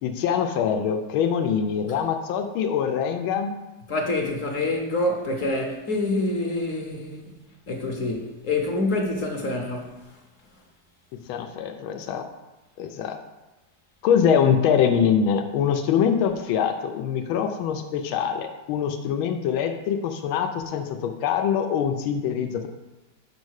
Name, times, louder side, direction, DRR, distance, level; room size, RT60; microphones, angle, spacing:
voice 1, 0.0-3.5 11.3-12.2 12.8-13.2 14.0-22.7, left 7 dB, 90° left, 1.5 m, -24 dB
voice 2, 3.9-7.3 7.7-10.0, left 2 dB, 55° left, 1.0 m, -26 dB
5.4 x 5.3 x 6.3 m
omnidirectional pair, 2.2 m